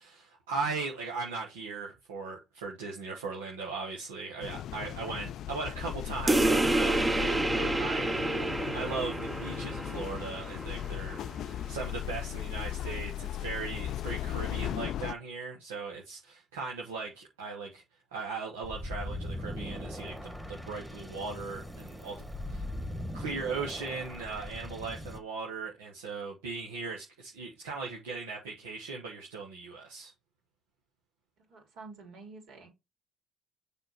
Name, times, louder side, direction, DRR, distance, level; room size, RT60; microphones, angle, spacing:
voice 1, 0.0-8.2 8.7-11.2 11.4-17.8 18.1-22.7 23.1-30.1, right 4 dB, 85° right, 1.2 m, -38 dB
sound 1, 4.4-15.1, left 11 dB, 60° left, 0.3 m, -37 dB
sound 2, 6.3-11.3, right 2 dB, 20° right, 0.9 m, -29 dB
voice 2, 8.2-8.7 31.4-32.7, right 3 dB, 65° right, 3.1 m, -49 dB
sound 3, 18.6-25.2, left 1 dB, 5° right, 1.5 m, -40 dB
6.7 x 3.6 x 4.4 m
hypercardioid pair, 60°, 0 cm